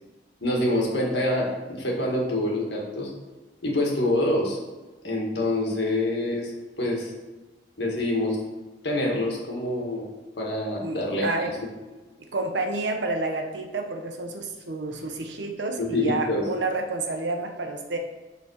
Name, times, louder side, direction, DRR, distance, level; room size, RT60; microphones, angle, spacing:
voice 1, 0.4-3.1 3.6-4.6 5.0-6.5 6.8-7.1 7.8-8.4 8.8-10.1 10.4-11.3 15.8-16.4, left 1 dB, 70° left, -1 dB, 1.8 m, -26 dB
voice 2, 10.8-11.5 12.3-18.0, right 2 dB, 85° right, 4 dB, 1.0 m, -29 dB
7.4 x 4.1 x 6.4 m, 1.2 s
head